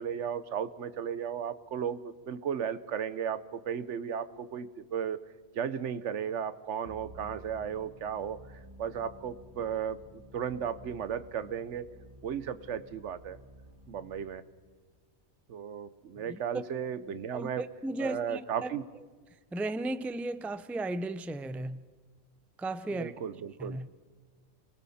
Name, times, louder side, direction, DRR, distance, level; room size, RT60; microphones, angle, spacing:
voice 1, 0.0-5.2 5.5-11.9 12.2-13.4 13.9-14.4 15.5-17.7 18.0-18.8 22.9-23.8, right 8 dB, 90° right, 1.2 m, -35 dB
sound 1, 6.9-14.2, equal, 30° right, 2.0 m, -53 dB
voice 2, 17.3-18.7 19.5-21.8 22.6-23.1 23.6-23.9, right 2 dB, ahead, 0.3 m, -35 dB
30.0 x 21.5 x 4.2 m
omnidirectional pair, 1.2 m